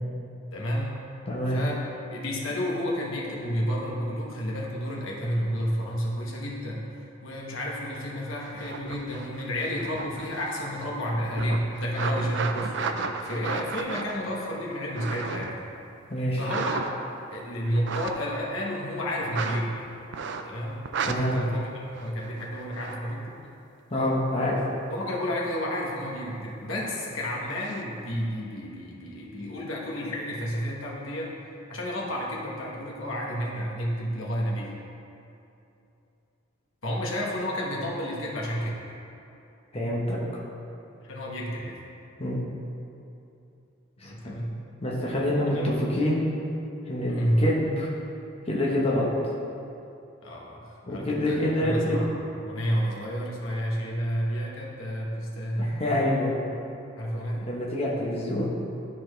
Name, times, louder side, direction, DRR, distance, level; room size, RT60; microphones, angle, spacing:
voice 1, 0.5-1.0 1.5-1.8 2.1-6.9 7.2-15.6 16.4-16.9 17.3-19.8 20.4-23.4 24.9-31.3 31.7-34.7 36.8-38.7 41.0-41.8 44.0-44.6 45.4-45.8 47.1-47.5 50.2-56.2 56.9-57.5, equal, 80° left, -3 dB, 1.3 m, -31 dB
voice 2, 1.3-1.6 16.1-16.4 21.1-21.4 23.9-24.6 39.7-40.2 42.2-42.4 44.0-44.3 44.8-46.2 46.9-47.9 48.5-49.1 50.9-52.0 55.6-56.3 57.5-58.5, left 1 dB, 30° left, -5 dB, 1.0 m, -26 dB
wood mdf, 8.4-10.9 11.3-15.6 16.4-17.2 17.7-18.1 19.3-19.6 20.1-20.6 20.8-21.1 21.9-23.0 27.5-27.8, right 5 dB, 60° right, 0.4 m, -34 dB
12.5 x 4.2 x 3.2 m, 2.8 s
head